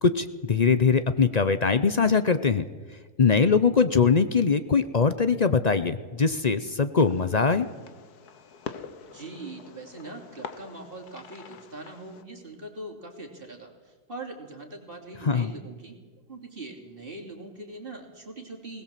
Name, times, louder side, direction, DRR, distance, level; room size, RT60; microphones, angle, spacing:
voice 1, 0.0-2.7 3.2-7.7 15.2-15.5, left 5 dB, 40° left, 12 dB, 0.5 m, -22 dB
Fireworks, 7.0-12.2, left 6 dB, 90° left, 1.7 m, -44 dB
voice 2, 9.1-16.0 16.3-18.8, right 2 dB, 35° right, 1 dB, 3.1 m, -42 dB
20.5 x 18.5 x 7.5 m, 1.4 s
omnidirectional pair, 1.6 m